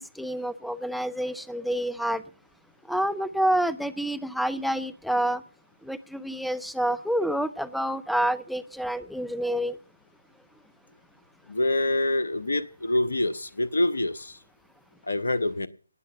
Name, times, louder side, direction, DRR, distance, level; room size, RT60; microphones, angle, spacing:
voice 1, 0.0-2.2 2.9-5.4 5.8-9.8, right 1 dB, ahead, 17 dB, 0.7 m, -28 dB
voice 2, 11.5-14.4 15.0-15.7, left 1 dB, 70° left, 10 dB, 1.2 m, -26 dB
18.5 x 8.7 x 6.9 m, 0.41 s
figure-of-eight pair, 145°, 0 cm